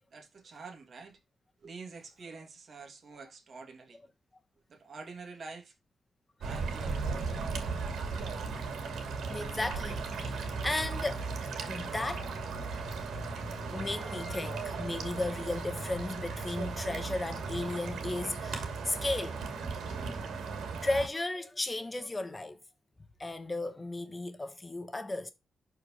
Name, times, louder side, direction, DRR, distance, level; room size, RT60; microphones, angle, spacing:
voice 1, 0.1-1.2 1.6-4.0 4.7-5.7 6.4-7.9, right 4 dB, 50° right, 2.5 m, -48 dB
sound 1, 6.4-21.1, right 4 dB, 90° right, 2.6 m, -36 dB
voice 2, 9.3-11.3 11.6-12.4 12.8-12.9 13.7-19.4 20.1-20.2 20.8-22.6 23.2-25.3, left 2 dB, 20° left, 1.3 m, -35 dB
11.5 x 4.5 x 3.1 m
wide cardioid pair, 125°, 0 cm